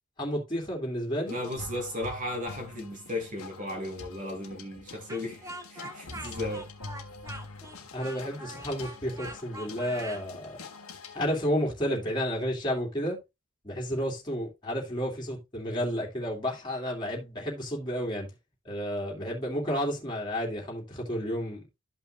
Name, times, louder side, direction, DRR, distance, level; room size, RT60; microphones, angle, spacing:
voice 1, 0.2-1.4 7.9-10.6 11.1-13.2 13.6-18.3 18.6-21.6, equal, 20° left, 2.7 m, -31 dB
sound 1, 1.3-11.5, left 3 dB, 85° left, 1.6 m, -45 dB
voice 2, 1.3-6.7, left 1 dB, 35° right, 2.3 m, -35 dB
Speech, 5.1-10.2, right 1 dB, 15° right, 1.1 m, -43 dB
13.0 x 5.7 x 2.5 m
head